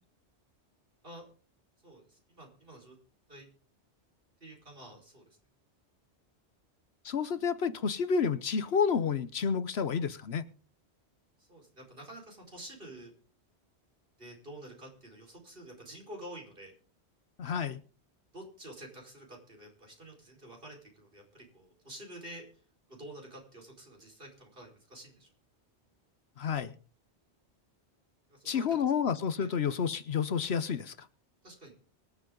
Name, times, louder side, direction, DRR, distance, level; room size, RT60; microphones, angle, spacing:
voice 1, 1.8-3.0 3.3-3.5 4.4-5.2 11.4-13.1 14.2-16.7 18.3-22.5 22.9-25.3 28.3-28.6 29.4-29.5 31.4-31.7, right 1 dB, 55° right, 0 dB, 5.0 m, -49 dB
voice 2, 7.0-10.4 17.4-17.8 26.4-26.7 28.4-31.1, left 6 dB, 70° left, 14 dB, 1.1 m, -30 dB
24.0 x 8.4 x 3.9 m, 0.40 s
omnidirectional pair, 1.2 m